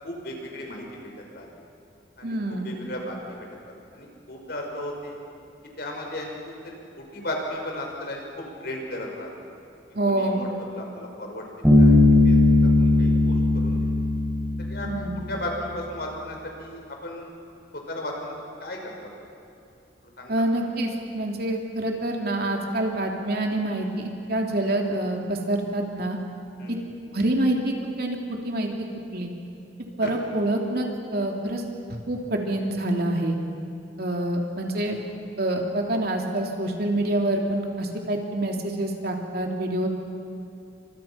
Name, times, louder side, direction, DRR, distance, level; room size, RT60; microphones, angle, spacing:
voice 1, 0.0-1.5 2.2-3.5 3.9-5.2 5.8-6.3 6.6-8.3 8.6-9.3 10.0-13.8 14.6-17.3 17.7-18.4 18.6-19.1 20.2-20.4 26.6-26.9 30.0-30.1, left 1 dB, 60° left, 1 dB, 5.4 m, -35 dB
voice 2, 2.2-2.7 9.9-10.4 14.8-15.2 20.3-26.2 26.7-26.8 27.1-28.2 28.4-28.7 29.1-29.3 30.0-31.6 32.1-33.4 34.0-35.0 35.4-39.9, right 1 dB, 55° right, 1 dB, 3.2 m, -26 dB
Bass guitar, 11.6-15.3, left 2 dB, 5° right, 6.9 m, -18 dB
30.0 x 26.0 x 5.9 m, 2.7 s
head